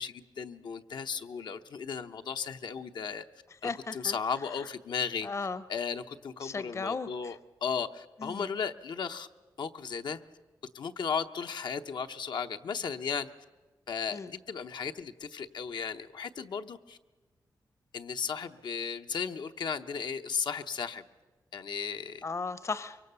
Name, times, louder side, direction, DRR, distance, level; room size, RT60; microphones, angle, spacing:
voice 1, 0.0-3.2 3.6-5.3 5.7-9.3 9.6-10.2 10.7-13.3 13.9-17.0 17.9-21.0 21.5-22.2, left 6 dB, 75° left, 7 dB, 0.9 m, -35 dB
voice 2, 3.6-4.1 5.2-5.6 6.4-7.4 8.2-8.5 14.1-14.3 22.2-23.0, left 4 dB, 40° left, 15 dB, 0.8 m, -36 dB
24.5 x 23.0 x 6.8 m, 1.3 s
wide cardioid pair, 125°, 8 cm